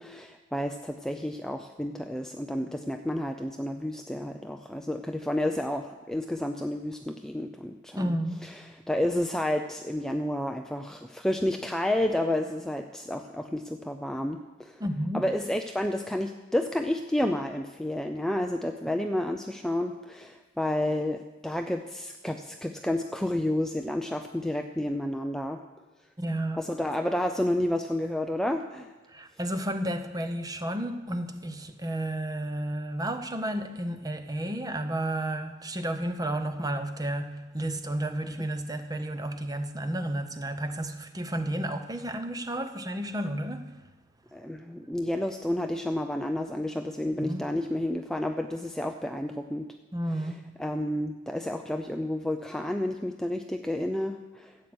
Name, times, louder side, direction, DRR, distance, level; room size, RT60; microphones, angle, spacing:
voice 1, 0.0-8.1 8.4-8.6 8.9-14.8 15.1-25.6 26.6-28.9 44.3-49.7 50.6-54.6, left 1 dB, ahead, 0.5 m, -30 dB
voice 2, 7.9-8.5 14.8-15.3 26.2-26.6 29.1-43.8 47.2-47.5 49.9-50.3, right 1 dB, 20° right, 0.9 m, -32 dB
14.0 x 8.5 x 7.9 m
head